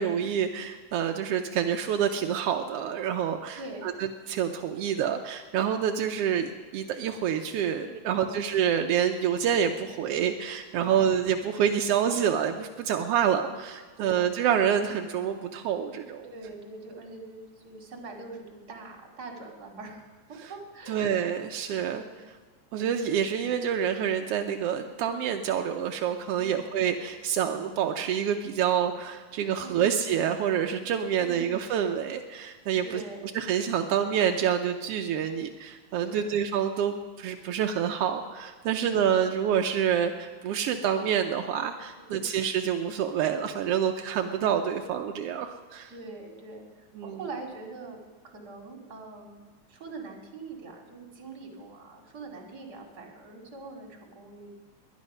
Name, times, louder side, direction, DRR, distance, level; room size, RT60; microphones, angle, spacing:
voice 1, 0.0-16.3 20.9-22.0 22.7-33.0 33.3-45.9 47.0-47.2, right 8 dB, 80° right, 5 dB, 1.4 m, -27 dB
voice 2, 3.5-3.9 8.1-8.4 10.8-11.1 14.0-14.3 16.3-21.2 21.9-22.1 26.4-26.7 29.6-30.0 31.2-31.7 32.8-33.3 36.0-36.3 38.7-39.0 42.1-42.3 45.9-49.4 49.7-54.5, right 3 dB, 35° right, 1 dB, 2.5 m, -43 dB
sound 1, 27.4-28.3 29.9-31.0, right 5 dB, 30° left, 6.8 m, -50 dB
20.5 x 10.5 x 5.4 m, 1.4 s
omnidirectional pair, 3.4 m